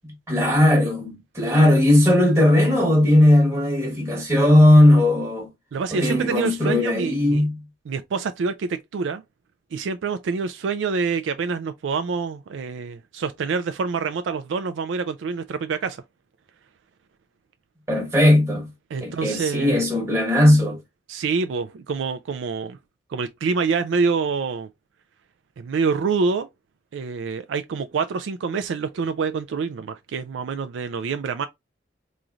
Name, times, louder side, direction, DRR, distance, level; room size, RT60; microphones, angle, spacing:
voice 1, 0.0-5.5 5.9-7.6 17.9-18.7 19.0-20.8, left 1 dB, 15° right, 1.0 m, -17 dB
voice 2, 5.7-7.5 7.9-9.2 9.7-16.0 18.9-19.8 21.1-22.8 23.1-24.7 25.6-26.5 26.9-31.5, right 5 dB, 85° right, 0.4 m, -26 dB
3.8 x 3.1 x 2.4 m
head